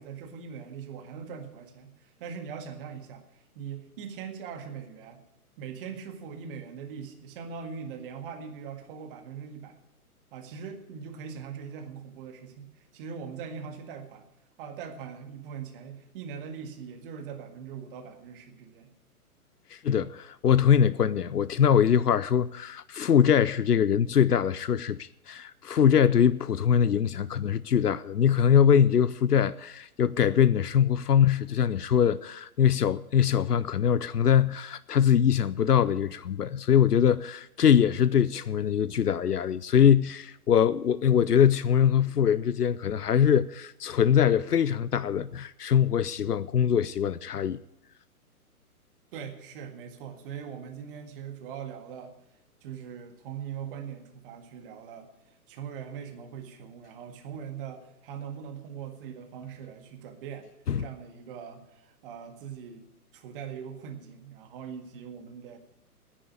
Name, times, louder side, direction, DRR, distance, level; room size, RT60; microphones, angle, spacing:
voice 1, 0.0-3.2 3.6-5.2 5.6-9.8 10.3-14.2 14.6-18.9 49.1-52.2 52.6-55.1 55.5-60.5 60.8-62.8 63.1-65.6, right 7 dB, 35° right, 1.9 m, -41 dB
voice 2, 19.7-47.6 60.7-60.8, left 8 dB, 90° left, 0.6 m, -23 dB
10.0 x 9.8 x 8.5 m
figure-of-eight pair, 125°, 45 cm